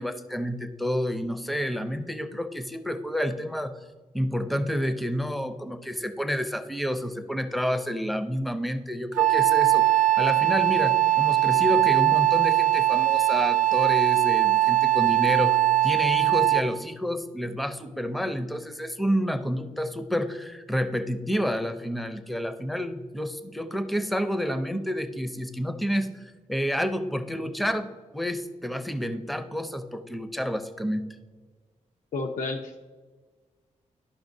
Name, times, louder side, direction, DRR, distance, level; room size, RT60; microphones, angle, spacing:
voice 1, 0.0-3.8 4.1-31.1, equal, ahead, 9 dB, 0.4 m, -29 dB
Wind instrument woodwind instrument, 9.2-16.8, right 14 dB, 80° right, 0.4 m, -21 dB
voice 2, 32.1-32.8, left 3 dB, 85° left, 2 dB, 0.6 m, -31 dB
11.5 x 5.7 x 2.6 m, 1.4 s
wide cardioid pair, 160°, 13 cm